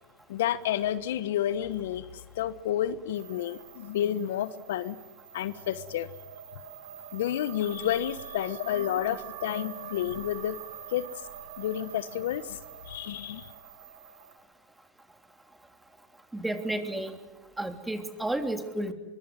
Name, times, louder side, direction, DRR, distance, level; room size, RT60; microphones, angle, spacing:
voice 1, 0.3-2.1 2.3-5.0 5.3-6.1 7.1-10.6 10.9-11.0 11.6-12.6 12.9-13.5, left 11 dB, 70° left, 14 dB, 1.2 m, -30 dB
sound 1, 3.1-14.3, right 8 dB, 75° right, 7.4 m, -45 dB
voice 2, 16.3-17.2 17.6-18.9, right 1 dB, 5° right, 7 dB, 3.2 m, -31 dB
24.0 x 23.0 x 9.8 m, 1.1 s
hypercardioid pair, 100°, 0 cm